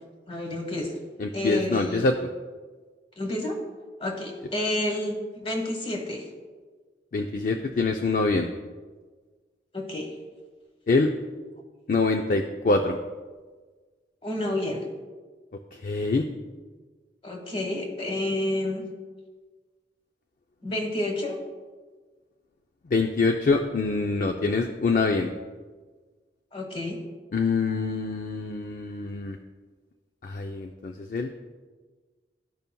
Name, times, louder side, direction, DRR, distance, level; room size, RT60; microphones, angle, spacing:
voice 1, 0.3-1.0 1.3-2.0 3.2-3.6 4.0-6.3 9.7-10.1 14.2-14.9 17.2-18.8 20.6-21.4 26.5-27.0, left 1 dB, 30° left, 2 dB, 1.3 m, -29 dB
voice 2, 1.2-2.2 7.1-8.5 10.9-11.1 11.9-13.0 15.7-16.3 22.9-25.3 27.3-29.4 30.2-31.3, left 3 dB, 50° left, 4 dB, 0.4 m, -25 dB
13.5 x 5.3 x 2.2 m, 1.4 s
head